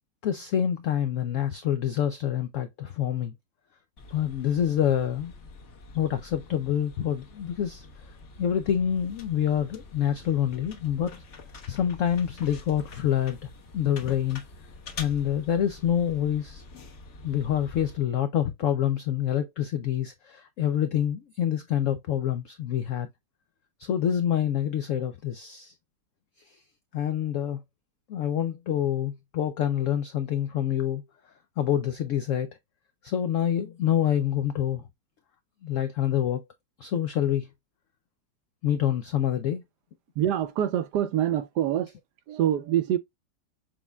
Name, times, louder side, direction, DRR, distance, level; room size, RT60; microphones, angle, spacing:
voice 1, 0.2-3.3 4.1-5.3 5.9-7.8 8.4-11.2 11.7-14.4 15.0-16.6 17.2-23.1 23.8-25.7 26.4-26.6 26.9-27.6 28.1-31.0 31.6-32.5 33.0-34.8 35.6-36.4 36.8-37.5 38.6-39.6, left 10 dB, 80° left, 0.7 m, -27 dB
sound 1, 4.0-18.0, left 3 dB, 45° left, 1.3 m, -46 dB
voice 2, 40.2-41.9 42.3-43.0, right 11 dB, 75° right, 1.2 m, -25 dB
6.4 x 3.5 x 2.2 m
omnidirectional pair, 1.9 m